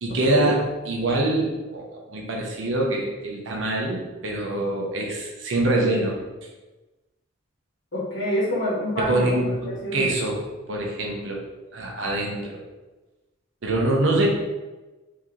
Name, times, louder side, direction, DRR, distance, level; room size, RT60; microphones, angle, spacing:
voice 1, 0.0-6.1 9.0-10.4 10.7-11.4 11.7-12.6 13.6-14.3, right 2 dB, 75° right, -1 dB, 0.7 m, -24 dB
voice 2, 7.9-9.4 9.6-10.1, equal, 75° left, -8 dB, 1.1 m, -27 dB
3.1 x 2.7 x 3.7 m, 1.1 s
head